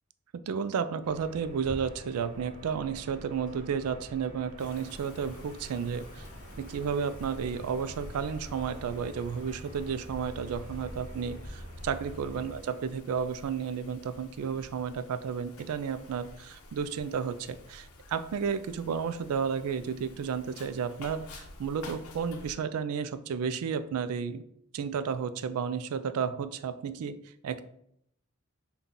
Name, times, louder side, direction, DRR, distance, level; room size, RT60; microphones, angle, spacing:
voice 1, 0.5-6.2 6.6-24.4 24.7-27.2 27.4-27.6, right 6 dB, 85° right, 11 dB, 0.3 m, -32 dB
sound 1, 1.0-12.6, equal, 35° right, 0.6 m, -47 dB
Wind, 4.6-22.5, left 1 dB, 80° left, 0.6 m, -49 dB
5.4 x 2.3 x 3.7 m, 0.72 s
head